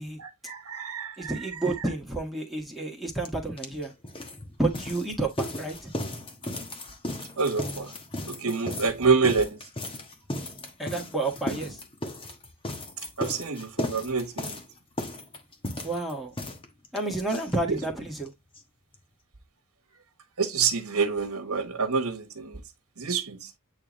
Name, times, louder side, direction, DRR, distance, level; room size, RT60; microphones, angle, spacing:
voice 1, 0.2-1.3 7.4-7.9 8.3-9.6 13.2-14.6 17.7-17.8 20.4-22.6 23.0-23.5, right 5 dB, 80° right, 1.4 m, -27 dB
voice 2, 1.2-3.9 4.6-5.9 10.8-11.8 15.8-16.3 16.9-18.3, right 2 dB, ahead, 1.8 m, -30 dB
sound 1, 3.2-3.3 3.6-18.0 18.2-18.3 18.5-18.6 18.9-19.0, left 1 dB, 25° left, 1.3 m, -36 dB
8.8 x 3.5 x 3.2 m
head